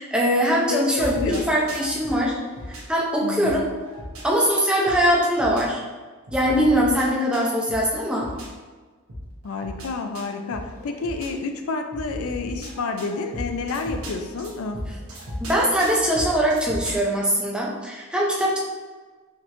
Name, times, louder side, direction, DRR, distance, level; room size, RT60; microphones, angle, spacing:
voice 1, 0.0-1.2 1.5-2.3 2.7-3.6 4.2-5.8 6.3-8.3 15.4-18.6, equal, 5° right, -4 dB, 0.6 m, -21 dB
voice 2, 0.7-1.5 3.2-3.6 9.4-14.9, left 4 dB, 80° left, 6 dB, 0.4 m, -29 dB
sound 1, 1.0-2.8 3.4-5.6 6.3-8.5 9.1-11.3 11.9-16.9, equal, 90° right, 1.0 m, -36 dB
5.1 x 3.0 x 2.5 m, 1.4 s
head